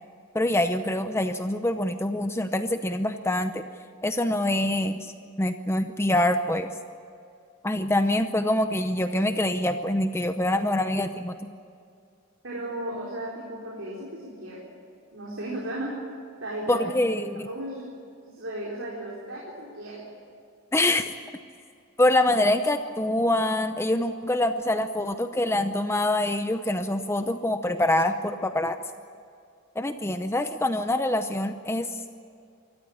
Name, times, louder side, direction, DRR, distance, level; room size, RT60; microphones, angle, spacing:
voice 1, 0.3-3.6 4.0-5.1 5.4-6.7 7.6-11.4 16.7-17.5 20.7-21.1 22.0-28.8 29.8-32.0, left 1 dB, 10° left, 8 dB, 0.6 m, -25 dB
voice 2, 12.4-14.6 15.1-16.0 16.4-16.9 17.4-17.9 18.2-20.1, right 1 dB, 55° right, -3 dB, 4.2 m, -35 dB
25.0 x 14.5 x 10.0 m, 2.4 s
head